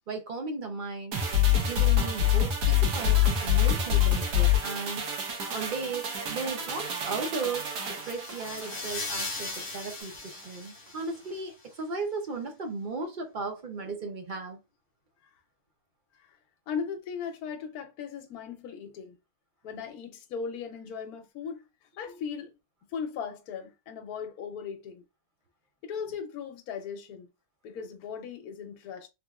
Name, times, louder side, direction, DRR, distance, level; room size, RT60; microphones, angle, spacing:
voice 1, 0.1-1.1 1.5-5.1 5.5-14.6, right 4 dB, 60° right, 0.5 m, -36 dB
sound 1, 1.1-9.7 10.0-10.1, left 8 dB, 80° right, 1.4 m, -26 dB
sound 2, 2.3-10.0, right 2 dB, 30° right, 0.8 m, -52 dB
sound 3, 7.5-11.4, left 2 dB, 40° left, 1.2 m, -39 dB
voice 2, 16.7-19.2 19.6-21.6 22.0-22.5 22.9-25.0 25.8-27.3 27.6-29.1, left 6 dB, 70° left, 1.1 m, -38 dB
3.4 x 3.0 x 2.3 m
omnidirectional pair, 1.7 m